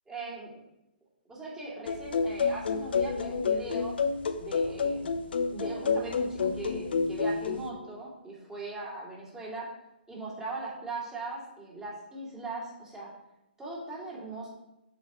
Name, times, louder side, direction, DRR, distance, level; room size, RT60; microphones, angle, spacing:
voice 1, 0.1-0.6 1.3-3.9 4.4-9.7 10.1-13.1 13.6-14.5, right 2 dB, 10° right, -6 dB, 2.9 m, -39 dB
sound 1, 1.9-7.7, left 5 dB, 70° left, 0.8 m, -29 dB
7.5 x 7.0 x 3.2 m, 0.90 s
hypercardioid pair, 140°, 6 cm